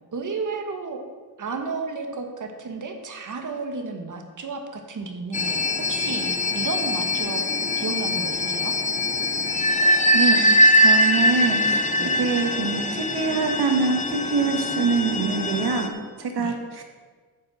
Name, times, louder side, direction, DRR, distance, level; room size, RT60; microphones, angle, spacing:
voice 1, 0.1-1.0 1.4-7.4 7.8-8.8 12.0-12.1 16.4-16.6, right 4 dB, 50° right, 5 dB, 1.4 m, -32 dB
sound 1, 5.3-15.9, left 1 dB, 20° left, 0.7 m, -22 dB
voice 2, 10.7-15.9 16.2-16.8, right 4 dB, 85° right, 4 dB, 1.6 m, -25 dB
9.4 x 6.3 x 7.5 m, 1.5 s
wide cardioid pair, 155°, 38 cm